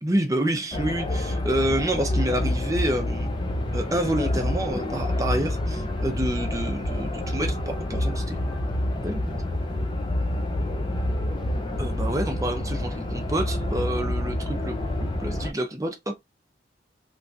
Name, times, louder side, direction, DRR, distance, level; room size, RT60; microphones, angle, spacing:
voice 1, 0.0-3.3 3.7-9.2 11.8-16.1, right 1 dB, 20° right, 0.6 m, -28 dB
sound 1, 0.7-15.5, left 1 dB, 25° left, 0.5 m, -27 dB
3.0 x 2.4 x 2.6 m
head